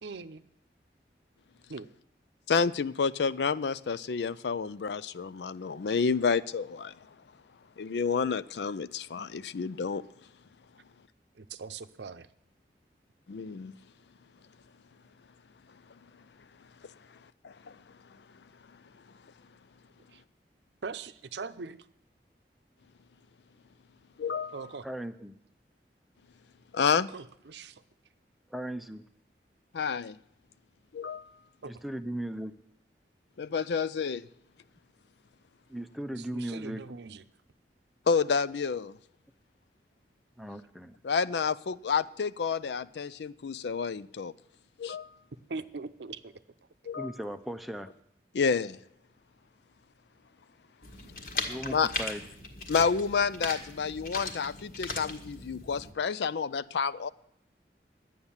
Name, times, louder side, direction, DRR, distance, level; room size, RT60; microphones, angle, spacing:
voice 1, 0.0-0.4 1.7-1.9 11.4-12.3 20.1-20.2 20.8-21.8 24.5-24.9 26.9-27.8 31.6-31.7 36.2-37.2 45.5-46.3, right 4 dB, 80° right, 12 dB, 0.6 m, -41 dB
voice 2, 2.5-6.9 7.8-10.0 13.3-13.7 17.4-17.5 24.2-24.5 26.7-27.1 29.7-30.2 30.9-31.2 33.4-34.2 38.1-39.0 41.0-44.3 44.8-45.1 46.9-47.1 48.3-48.8 51.7-51.9 52.7-57.1, left 5 dB, 80° left, 16 dB, 0.4 m, -29 dB
voice 3, 24.8-25.4 28.5-29.0 31.7-32.5 35.7-36.8 40.4-41.0 46.9-47.9 51.5-52.2, right 1 dB, ahead, 8 dB, 0.5 m, -37 dB
sound 1, 50.8-55.9, left 3 dB, 50° left, 1.6 m, -38 dB
11.5 x 9.3 x 7.2 m, 0.75 s
head